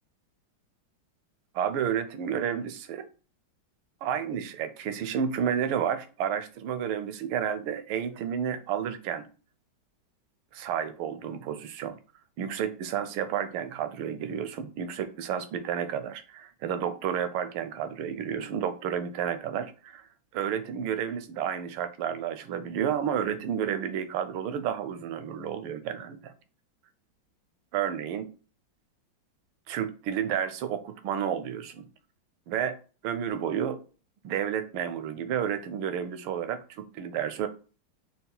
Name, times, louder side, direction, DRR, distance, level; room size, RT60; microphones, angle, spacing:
voice 1, 1.6-3.1 4.0-9.3 10.5-12.0 12.4-20.0 20.3-26.3 27.7-28.3 29.7-31.8 32.5-32.8 33.0-33.8 34.2-37.5, right 8 dB, 85° right, 10 dB, 1.5 m, -31 dB
5.6 x 2.3 x 3.8 m, 0.36 s
omnidirectional pair, 2.3 m